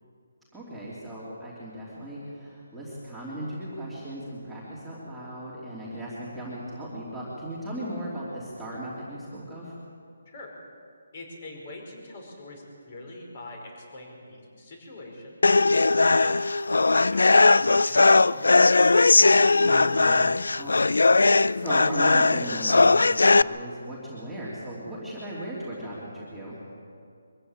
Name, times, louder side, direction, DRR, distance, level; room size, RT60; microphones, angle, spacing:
voice 1, 0.5-9.7 19.6-20.3 20.6-26.6, right 1 dB, ahead, -11 dB, 3.1 m, -37 dB
voice 2, 11.1-15.4 15.9-16.4 17.1-18.4, left 2 dB, 35° left, 1 dB, 5.1 m, -43 dB
sound 1, 15.4-23.4, left 3 dB, 85° left, 0.4 m, -19 dB
23.0 x 14.5 x 9.0 m, 2.4 s
hypercardioid pair, 170°, 0 cm